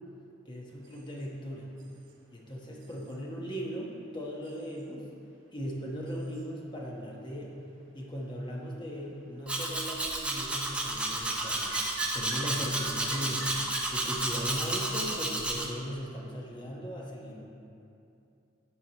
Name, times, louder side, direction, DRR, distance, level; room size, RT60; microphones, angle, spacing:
voice 1, 0.4-1.8 2.3-5.1 5.5-7.6 7.9-11.8 12.1-17.4, equal, 25° left, -3 dB, 1.0 m, -38 dB
sound 1, 0.8-1.3 1.8-2.1 2.8-3.2 4.4-4.8 6.1-6.5 9.8-10.2 10.5-10.6 10.8-13.8, right 5 dB, 85° right, 0.9 m, -46 dB
Domestic sounds home sounds, 9.5-15.7, right 1 dB, 5° right, 0.5 m, -32 dB
14.0 x 4.8 x 3.0 m, 2.6 s
head